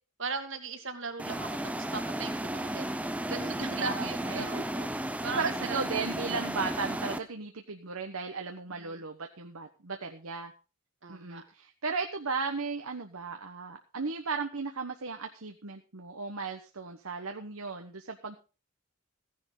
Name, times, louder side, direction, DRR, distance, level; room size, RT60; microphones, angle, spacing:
voice 1, 0.2-1.5 1.8-2.9 3.2-5.8 8.7-9.0 11.0-11.4, right 4 dB, 60° right, 7 dB, 2.2 m, -38 dB
sound 1, 1.2-7.2, right 1 dB, 5° right, 0.6 m, -34 dB
voice 2, 3.8-4.6 5.4-10.5 11.1-18.4, right 4 dB, 80° right, 4 dB, 1.2 m, -36 dB
16.0 x 10.5 x 3.9 m, 0.34 s
head